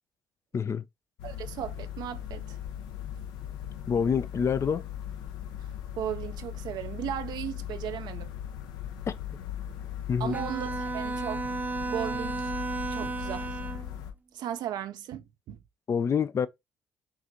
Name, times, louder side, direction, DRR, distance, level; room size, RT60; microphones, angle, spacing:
voice 1, 0.5-0.8 3.9-4.8 9.1-9.2 10.1-10.4 15.9-16.5, left 6 dB, 40° left, 0.4 m, -26 dB
sound 1, 1.2-14.1, left 10 dB, 80° left, 0.9 m, -39 dB
voice 2, 1.2-2.6 5.6-8.3 10.2-11.5 11.8-12.5 12.9-13.6 14.3-15.6, right 10 dB, 65° right, 0.5 m, -36 dB
Bowed string instrument, 10.3-14.0, right 3 dB, 20° right, 0.7 m, -33 dB
6.1 x 2.5 x 2.7 m
hypercardioid pair, 60°, 8 cm